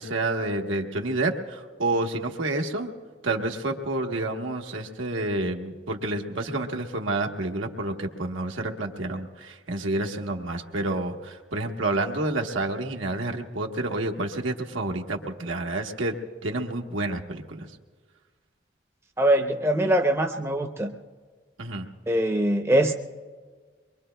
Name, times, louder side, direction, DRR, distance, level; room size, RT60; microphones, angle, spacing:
voice 1, 0.0-2.9 3.2-16.2 16.4-17.7 21.6-21.9, right 2 dB, 90° right, 3 dB, 1.1 m, -29 dB
voice 2, 19.2-20.9 22.1-22.9, right 1 dB, 15° right, 4 dB, 0.6 m, -22 dB
23.5 x 23.0 x 2.2 m, 1.5 s
head